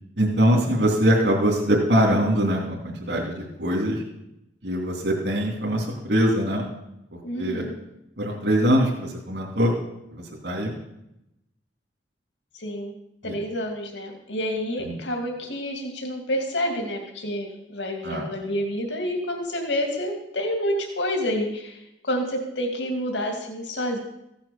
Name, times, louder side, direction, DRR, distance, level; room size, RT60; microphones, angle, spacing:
voice 1, 0.2-4.0 4.6-6.6 7.3-7.6 8.2-9.7 10.1-10.7 13.2-13.3 14.8-14.9 18.0-18.3, equal, 70° right, -2 dB, 3.1 m, -22 dB
voice 2, 7.2-7.8 12.5-12.9 13.2-24.0, equal, 80° left, 2 dB, 2.4 m, -28 dB
15.5 x 8.9 x 6.9 m, 0.84 s
head